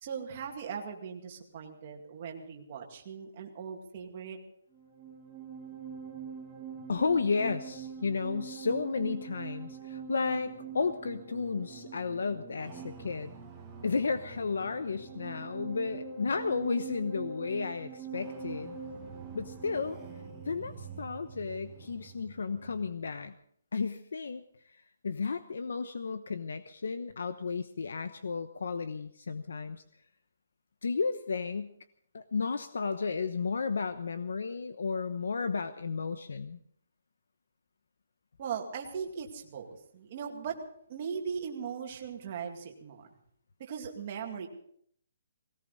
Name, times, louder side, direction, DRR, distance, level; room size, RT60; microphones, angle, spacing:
voice 1, 0.0-4.4 38.4-40.6 40.9-43.1 43.6-44.5, right 7 dB, 30° right, 2 dB, 2.2 m, -39 dB
sound 1, 4.7-23.2, right 5 dB, 10° right, 1.7 m, -44 dB
voice 2, 6.9-13.3 13.8-18.8 19.3-20.0 20.4-23.3 23.7-24.4 24.7-29.8 30.8-31.7 32.1-36.6, left 4 dB, 75° left, 11 dB, 1.0 m, -33 dB
19.5 x 18.0 x 4.1 m, 0.65 s
hypercardioid pair, 180°, 0 cm